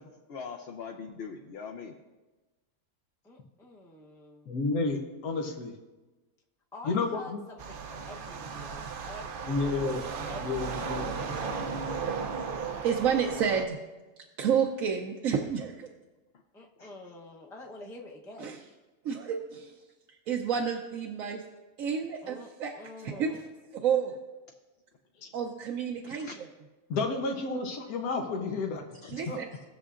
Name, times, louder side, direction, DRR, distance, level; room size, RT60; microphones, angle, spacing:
voice 1, 0.0-2.0 9.7-10.0 16.8-16.9 24.5-24.6 26.0-26.4 29.0-29.2, left 5 dB, 55° left, 2 dB, 0.8 m, -42 dB
voice 2, 3.2-4.5 6.7-10.0 10.3-11.8 16.5-18.6 22.2-22.5 22.7-23.4, left 2 dB, 5° left, -1 dB, 0.6 m, -47 dB
voice 3, 4.5-5.7 6.8-7.4 9.5-10.0 10.4-11.1 25.2-25.3 26.9-28.8 29.3-29.4, left 3 dB, 80° left, 2 dB, 1.4 m, -31 dB
sound 1, 7.6-13.7, right 5 dB, 55° right, 0.6 m, -35 dB
voice 4, 12.8-13.8 14.4-15.9 18.4-18.6 19.0-19.8 20.3-21.4 21.8-22.7 23.0-23.3 23.8-24.1 25.3-26.3 29.1-29.4, right 7 dB, 70° right, 2 dB, 1.1 m, -29 dB
19.0 x 6.8 x 2.5 m, 1.2 s
omnidirectional pair, 1.5 m